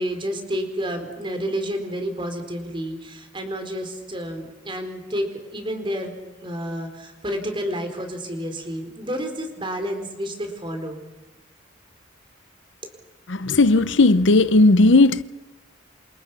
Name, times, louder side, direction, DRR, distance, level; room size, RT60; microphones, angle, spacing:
voice 1, 0.0-6.1 6.4-11.0, equal, 25° right, 4.4 m, -30 dB
voice 2, 13.3-15.2, left 2 dB, 70° left, 0.8 m, -15 dB
28.5 x 27.5 x 6.2 m
head